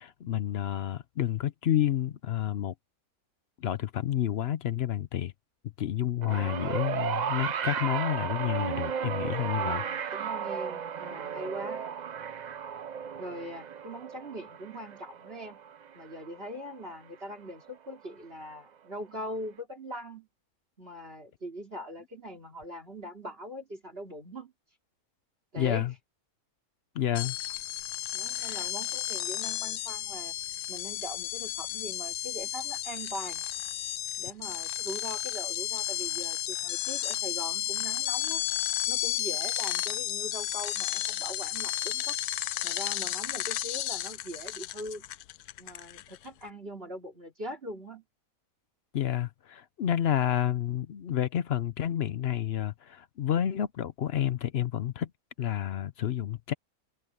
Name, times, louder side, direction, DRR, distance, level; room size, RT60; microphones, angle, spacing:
voice 1, 0.0-2.7 3.6-5.3 5.8-9.8 25.6-25.9 26.9-27.4 28.3-28.6 48.9-55.1 55.4-56.5, left 11 dB, 60° left, 0.7 m, -30 dB
sound 1, 6.2-16.7 17.7-17.8, right 7 dB, 90° right, 0.4 m, -34 dB
voice 2, 9.6-11.9 13.2-15.6 15.9-20.3 20.8-24.5 25.5-25.9 28.1-30.4 30.7-33.4 34.2-38.4 38.9-42.2 42.6-45.1 45.6-48.0, equal, 40° right, 3.3 m, -41 dB
sound 2, 27.1-46.3, left 13 dB, 85° left, 1.2 m, -33 dB
omnidirectional pair, 1.6 m